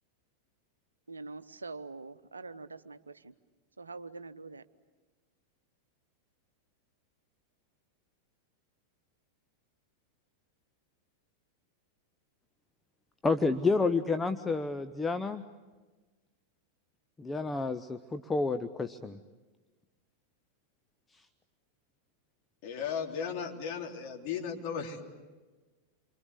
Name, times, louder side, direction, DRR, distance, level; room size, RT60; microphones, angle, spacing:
voice 1, 1.1-3.3 3.8-4.6, right 3 dB, 75° right, 13 dB, 0.9 m, -44 dB
voice 2, 13.2-15.4 17.2-19.2, left 3 dB, 15° left, 10 dB, 0.8 m, -30 dB
voice 3, 22.6-25.0, left 7 dB, 45° left, 1 dB, 3.5 m, -36 dB
28.5 x 25.0 x 8.3 m, 1.3 s
figure-of-eight pair, 90°, 0 cm